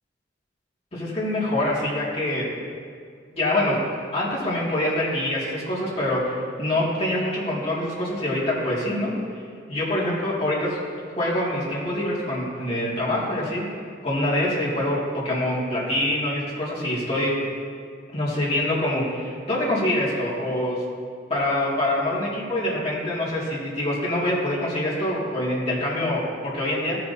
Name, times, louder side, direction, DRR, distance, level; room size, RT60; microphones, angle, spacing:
voice 1, 0.9-2.5 3.3-9.1 9.7-10.8 11.2-13.6 14.0-15.0 15.2-17.3 18.1-20.8 21.3-27.0, left 1 dB, 30° left, -7 dB, 2.2 m, -25 dB
15.0 x 5.9 x 2.7 m, 2.2 s
head